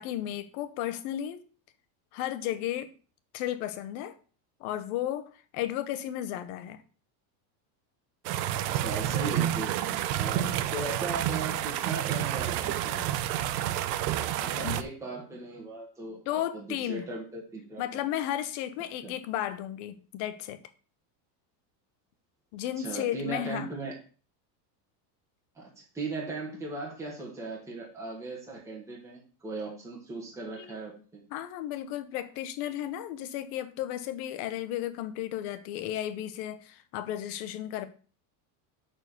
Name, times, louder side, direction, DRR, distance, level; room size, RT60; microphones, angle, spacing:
voice 1, 0.0-1.4 2.1-2.9 3.3-4.2 4.6-6.8 14.6-14.8 16.3-17.0 17.8-20.6 22.5-23.7 30.5-30.7 31.3-37.9, left 12 dB, 55° left, 1.0 m, -34 dB
sound 1, 8.2-14.8, right 12 dB, 70° right, 0.8 m, -29 dB
voice 2, 8.8-9.7 10.2-13.4 14.4-18.0 19.0-19.1 22.8-23.9 25.5-31.2, right 2 dB, 5° right, 1.5 m, -38 dB
6.9 x 4.6 x 6.7 m
cardioid pair, 170°, 50 cm